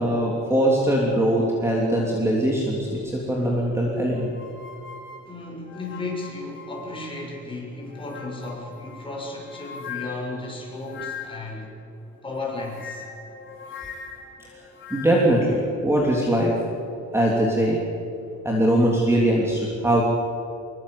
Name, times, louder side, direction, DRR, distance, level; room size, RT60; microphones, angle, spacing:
voice 1, 0.0-4.3 14.9-16.5 17.1-17.8 18.4-20.0, right 1 dB, 10° right, -3 dB, 3.2 m, -21 dB
sound 1, 4.1-7.4 7.8-11.6 12.4-15.4, left 6 dB, 40° left, 5.4 m, -41 dB
voice 2, 5.3-11.7 12.2-13.0, left 2 dB, 15° left, -1 dB, 6.9 m, -34 dB
25.5 x 23.0 x 8.5 m, 2.6 s
cardioid pair, 155°, 30 cm